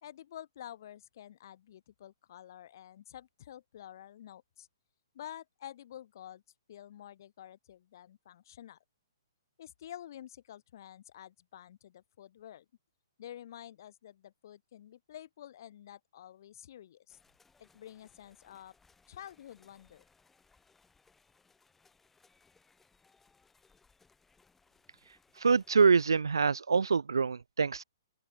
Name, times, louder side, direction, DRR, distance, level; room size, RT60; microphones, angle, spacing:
voice 1, 0.0-4.7 5.1-6.4 6.7-8.8 9.6-12.6 13.2-17.2 17.6-18.7 19.1-20.0, left 11 dB, 55° left, 2.8 m, -49 dB
sound 1, 17.1-26.1, left 4 dB, 10° left, 6.5 m, -67 dB
voice 2, 25.4-27.8, right 5 dB, 80° right, 0.7 m, -25 dB
open air
figure-of-eight pair, 125°, 2 cm